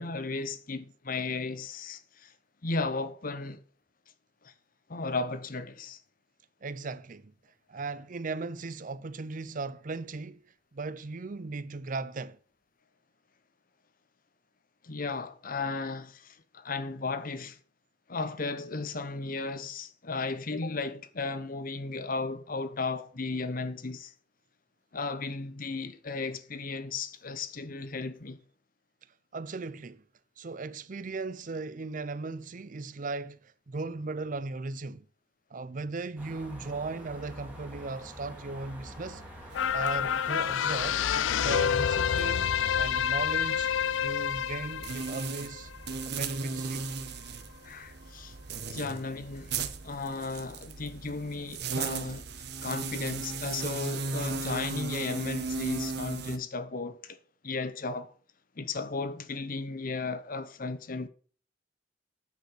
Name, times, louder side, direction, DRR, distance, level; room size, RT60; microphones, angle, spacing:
voice 1, 0.0-2.3 2.6-3.6 4.4-4.5 4.9-6.0 14.8-17.6 18.1-24.1 24.9-28.4 47.6-48.4 48.7-49.5 49.8-57.2 57.4-58.1 58.6-61.1, left 3 dB, 45° left, 0.9 m, -35 dB
voice 2, 6.6-7.3 7.7-10.4 10.7-12.4 29.3-30.0 30.4-35.1 35.5-39.2 39.7-41.0 41.4-43.7 44.0-45.7 46.1-46.9, right 3 dB, 45° right, 0.6 m, -37 dB
sound 1, 36.2-41.4, equal, 10° right, 2.3 m, -46 dB
sound 2, 39.5-46.2 46.6-46.7, left 8 dB, 90° left, 0.4 m, -28 dB
sound 3, 39.5-56.4, right 4 dB, 60° right, 1.0 m, -38 dB
9.5 x 5.2 x 6.5 m
head